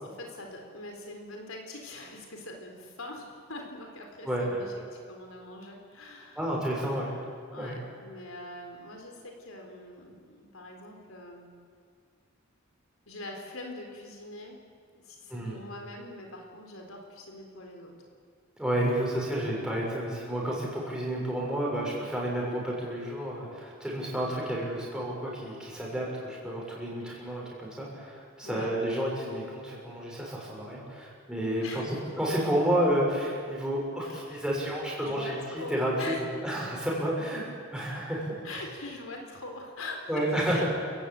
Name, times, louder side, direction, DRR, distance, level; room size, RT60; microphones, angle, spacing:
voice 1, 0.0-6.4 7.5-11.5 13.1-14.6 14.9-17.9 28.4-28.7 31.6-32.0 34.0-34.4 35.0-36.3 38.4-40.8, left 2 dB, 85° left, 2 dB, 4.1 m, -43 dB
voice 2, 4.2-4.6 6.3-7.3 7.6-7.8 15.3-15.6 18.6-37.4 37.7-38.7 40.1-40.6, right 1 dB, 5° right, -4 dB, 6.6 m, -31 dB
28.5 x 16.0 x 9.0 m, 2.1 s
head